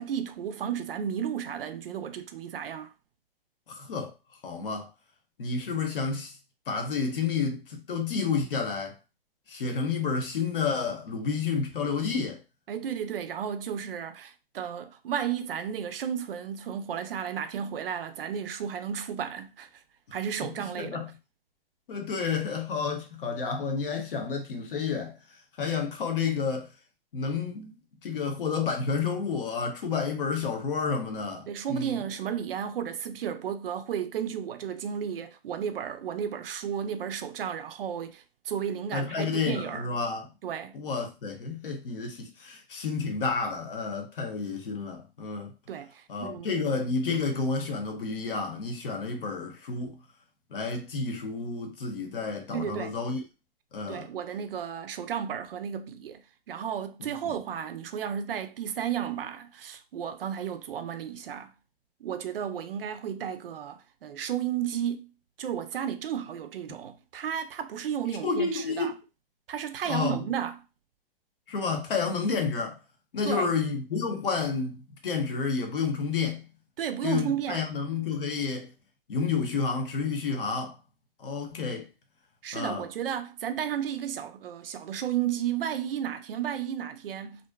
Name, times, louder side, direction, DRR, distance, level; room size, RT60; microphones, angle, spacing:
voice 1, 0.0-2.9 12.7-19.7 20.1-21.0 31.5-39.9 40.4-40.8 45.7-46.5 52.5-52.9 53.9-61.5 62.0-65.1 65.4-68.9 69.5-70.7 73.2-73.5 76.8-77.6 82.4-87.5, right 9 dB, 70° right, 0.4 m, -33 dB
voice 2, 3.7-4.1 4.4-4.9 5.4-6.3 6.7-9.0 9.5-12.4 20.4-21.1 21.9-25.2 25.6-26.7 27.1-27.7 28.0-32.0 38.9-40.3 40.7-45.5 46.1-50.0 50.5-53.2 53.7-54.1 57.0-57.1 68.2-69.0 69.9-70.2 71.5-72.8 73.1-76.4 77.0-78.7 79.1-80.8 81.2-81.9 82.5-82.8, left 5 dB, 65° left, 0.8 m, -30 dB
2.6 x 2.1 x 2.2 m
hypercardioid pair, 160°, 30 cm